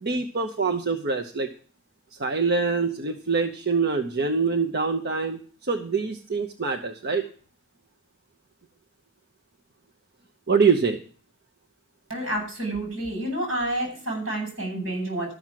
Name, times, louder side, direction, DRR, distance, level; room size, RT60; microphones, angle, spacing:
voice 1, 0.0-1.5 2.1-7.2 10.5-11.0, right 4 dB, 50° right, 6 dB, 0.9 m, -25 dB
voice 2, 12.1-15.3, right 1 dB, 80° right, 1 dB, 7.3 m, -29 dB
13.0 x 6.2 x 7.5 m, 0.42 s
head